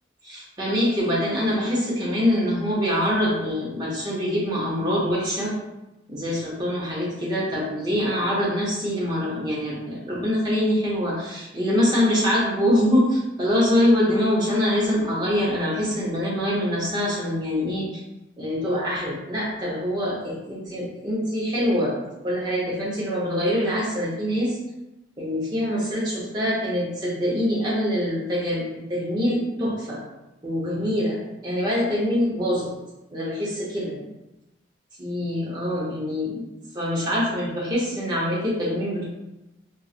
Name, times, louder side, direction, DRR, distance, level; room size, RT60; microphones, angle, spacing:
voice 1, 0.2-5.5 6.1-17.9 18.4-22.0 22.2-24.6 25.2-30.0 30.4-32.7 33.1-34.1 35.0-36.5 36.7-39.0, equal, 20° right, -6 dB, 0.9 m, -24 dB
3.9 x 2.4 x 2.4 m, 0.97 s
head